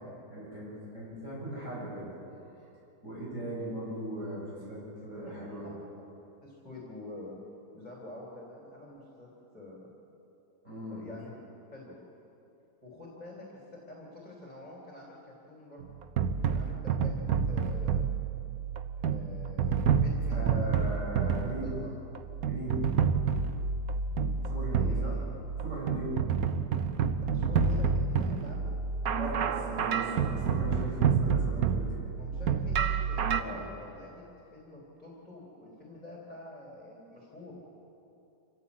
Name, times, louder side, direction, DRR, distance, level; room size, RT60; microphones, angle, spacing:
voice 1, 0.0-2.1 3.0-5.7 10.6-11.0 20.3-21.8 22.4-22.9 24.4-25.2 25.6-26.2 29.1-32.1 33.4-33.6, right 1 dB, 45° right, -6 dB, 8.1 m, -38 dB
voice 2, 6.4-7.4 7.7-9.9 10.9-11.4 11.7-12.0 12.8-15.8 16.5-18.0 19.0-20.8 21.2-21.9 24.6-25.2 27.1-28.7 32.2-34.2 34.5-37.5, left 2 dB, 25° left, -3 dB, 4.0 m, -47 dB
sound 1, 15.8-33.4, right 6 dB, 60° right, 1.3 m, -29 dB
26.0 x 16.0 x 8.7 m, 2.9 s
omnidirectional pair, 1.8 m